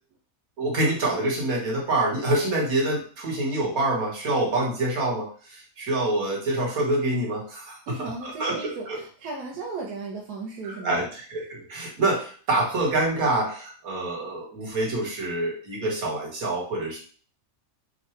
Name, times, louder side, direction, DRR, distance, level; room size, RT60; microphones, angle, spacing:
voice 1, 0.6-9.0 10.6-17.0, right 2 dB, 70° right, -2 dB, 1.7 m, -26 dB
voice 2, 7.9-11.0, right 4 dB, 90° right, -1 dB, 1.3 m, -35 dB
3.7 x 2.2 x 4.4 m, 0.42 s
omnidirectional pair, 1.6 m